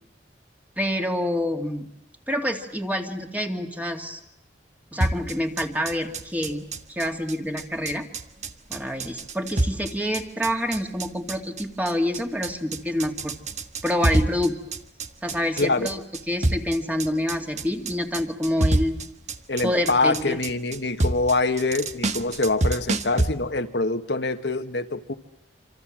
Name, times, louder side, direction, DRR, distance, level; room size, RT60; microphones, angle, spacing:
voice 1, 0.8-1.9 2.3-4.2 4.9-8.1 8.7-13.3 13.8-14.5 15.2-18.9 19.6-20.4, left 1 dB, 10° right, 4 dB, 2.5 m, -27 dB
sound 1, 5.0-23.3, right 2 dB, 40° right, 1.5 m, -27 dB
voice 2, 15.6-16.0 19.5-25.1, left 3 dB, 75° left, 7 dB, 1.6 m, -25 dB
27.0 x 27.0 x 7.7 m, 0.79 s
head